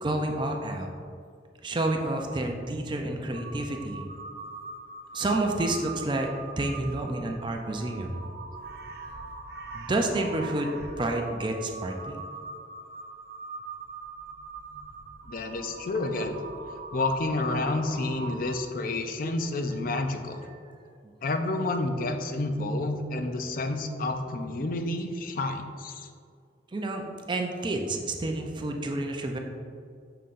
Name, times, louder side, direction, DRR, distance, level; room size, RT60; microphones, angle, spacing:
voice 1, 0.0-0.9 1.6-4.1 5.1-6.3 6.6-8.2 9.7-12.2 26.7-29.4, right 2 dB, 25° right, 3 dB, 0.4 m, -29 dB
Crow, 3.3-18.8, right 3 dB, 55° right, 0.7 m, -42 dB
voice 2, 15.3-16.4 16.9-20.4 21.2-26.1, left 2 dB, 50° left, 6 dB, 0.4 m, -29 dB
6.7 x 5.6 x 2.5 m, 2.3 s
head